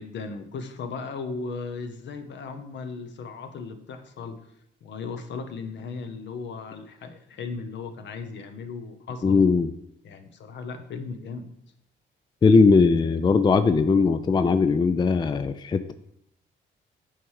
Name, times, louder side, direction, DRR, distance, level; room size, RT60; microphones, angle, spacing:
voice 1, 0.0-4.4 4.8-9.4 10.0-11.5, left 4 dB, 65° left, 8 dB, 0.9 m, -36 dB
voice 2, 9.2-9.7 12.4-15.9, left 4 dB, 20° left, 11 dB, 0.4 m, -19 dB
9.0 x 3.3 x 4.7 m, 0.74 s
cardioid pair, 90°, 20 cm